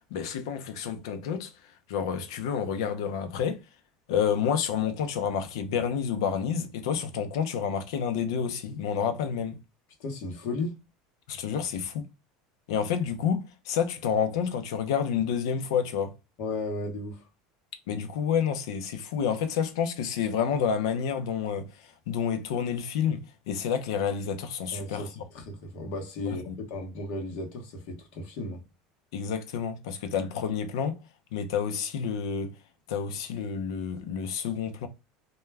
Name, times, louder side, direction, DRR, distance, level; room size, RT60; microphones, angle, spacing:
voice 1, 0.1-1.5 1.9-3.6 4.1-9.6 11.3-12.1 12.7-16.1 17.9-25.1 26.2-26.6 29.1-31.0 31.3-32.5 32.9-34.9, left 7 dB, 85° left, 0.5 m, -29 dB
voice 2, 10.0-10.8 16.4-17.2 24.7-28.6, left 2 dB, 60° left, 0.9 m, -35 dB
2.2 x 2.2 x 3.2 m
supercardioid pair, 135°, 3 cm